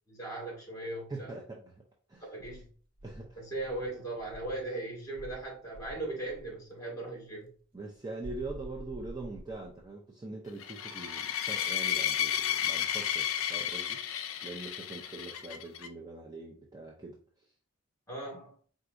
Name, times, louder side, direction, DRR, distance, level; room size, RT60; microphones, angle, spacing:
voice 1, 0.1-1.4 2.3-2.7 3.4-7.5 18.1-18.5, right 2 dB, 15° left, 2.0 m, -38 dB
voice 2, 1.1-1.8 2.1-2.3 3.0-3.4 7.7-17.5, right 2 dB, 20° right, 0.5 m, -43 dB
Insect, 2.4-4.7 5.1-6.6 8.2-9.9, equal, 80° right, 0.8 m, -48 dB
sound 1, 10.6-15.9, left 10 dB, 70° left, 0.4 m, -32 dB
4.5 x 3.8 x 2.5 m
head